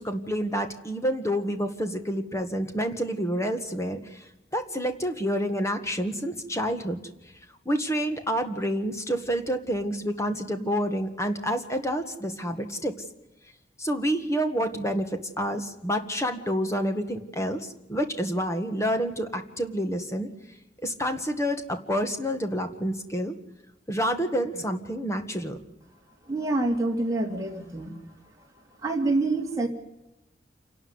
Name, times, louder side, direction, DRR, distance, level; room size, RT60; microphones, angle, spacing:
voice 1, 0.0-7.0 7.7-12.9 13.8-20.3 20.8-23.4 23.9-25.6, equal, 15° left, 7 dB, 1.7 m, -28 dB
voice 2, 26.3-27.9 28.8-29.7, right 2 dB, 15° right, 0 dB, 2.8 m, -26 dB
28.0 x 12.0 x 9.7 m, 0.92 s
head